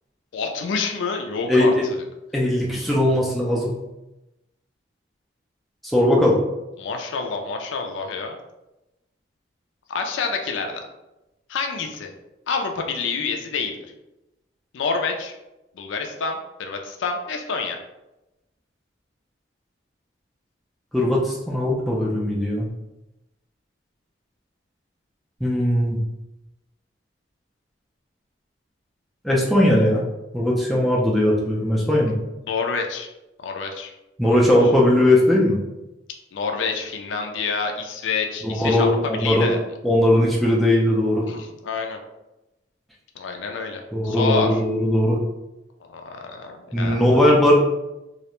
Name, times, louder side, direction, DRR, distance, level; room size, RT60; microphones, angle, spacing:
voice 1, 0.3-2.0 6.8-8.4 9.9-10.8 11.5-12.1 12.5-13.8 14.7-15.3 15.7-17.8 32.5-33.1 33.4-33.9 34.2-34.5 36.3-39.6 41.3-42.0 43.2-44.6 45.8-47.0, left 4 dB, 80° left, 4 dB, 0.4 m, -28 dB
voice 2, 1.5-1.8 2.3-3.7 5.9-6.4 20.9-22.7 25.4-26.0 29.2-30.0 30.3-32.1 34.2-35.6 38.4-39.5 39.8-41.2 43.9-45.2 46.7-47.5, left 1 dB, ahead, -5 dB, 0.4 m, -19 dB
2.4 x 2.1 x 2.9 m, 0.97 s
head